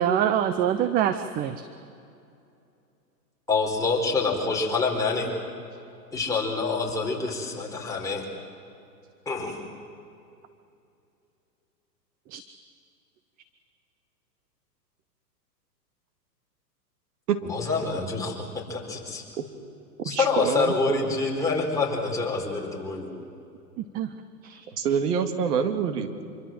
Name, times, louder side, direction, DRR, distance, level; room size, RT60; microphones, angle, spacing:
voice 1, 0.0-1.7 12.3-12.4 23.8-24.1 24.4-24.6, right 9 dB, 20° right, 11 dB, 0.6 m, -25 dB
voice 2, 3.5-5.3 6.1-8.2 9.3-9.6 17.4-18.4 18.7-19.2 20.0-23.1, left 4 dB, 5° left, -2 dB, 4.7 m, -26 dB
voice 3, 20.0-21.1 24.8-26.1, right 7 dB, 65° right, 8 dB, 2.3 m, -26 dB
26.0 x 24.0 x 7.7 m, 2.6 s
hypercardioid pair, 120°, 50 cm